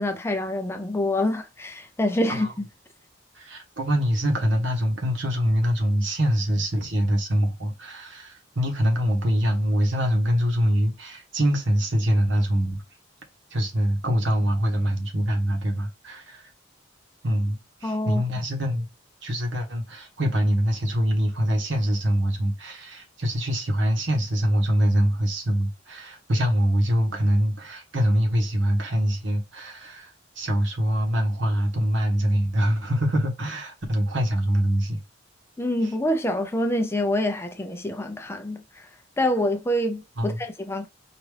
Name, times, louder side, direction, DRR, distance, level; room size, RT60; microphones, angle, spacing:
voice 1, 0.0-2.5 17.8-18.2 35.6-38.6 39.2-40.9, left 1 dB, 15° left, 0.5 m, -26 dB
voice 2, 3.3-12.8 13.5-16.5 17.2-18.9 19.2-35.0 35.8-35.9 40.2-40.4, equal, 70° right, 1.1 m, -24 dB
4.9 x 2.6 x 3.2 m
head